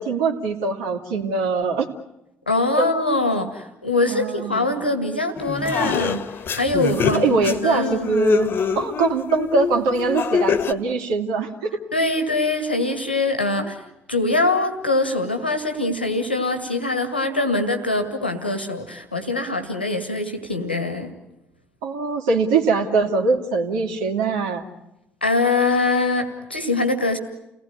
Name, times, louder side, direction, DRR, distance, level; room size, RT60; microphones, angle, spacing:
voice 1, 0.0-1.9 2.8-2.9 4.1-4.8 6.9-11.8 13.6-13.7 21.8-24.7, right 4 dB, 70° right, 4 dB, 2.7 m, -22 dB
voice 2, 2.5-6.2 6.5-8.1 11.9-13.8 14.1-21.1 25.2-27.2, left 2 dB, 90° left, 8 dB, 2.0 m, -23 dB
sound 1, 5.4-10.7, left 6 dB, 45° left, 1.5 m, -25 dB
30.0 x 19.0 x 9.7 m, 0.90 s
figure-of-eight pair, 50°, 5 cm